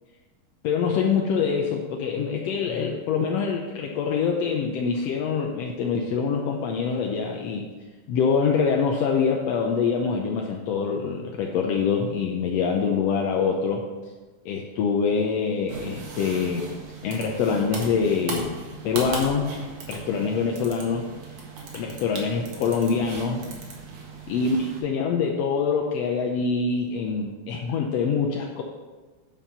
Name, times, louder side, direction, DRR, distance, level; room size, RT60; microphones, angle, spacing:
voice 1, 0.6-7.7 8.1-13.8 14.4-16.6 17.0-19.5 19.9-21.0 21.7-23.4 24.3-28.6, left 5 dB, 75° left, 1 dB, 1.5 m, -25 dB
sound 1, 15.7-24.8, right 4 dB, 70° right, 2.9 m, -38 dB
9.9 x 5.4 x 5.5 m, 1.3 s
omnidirectional pair, 3.6 m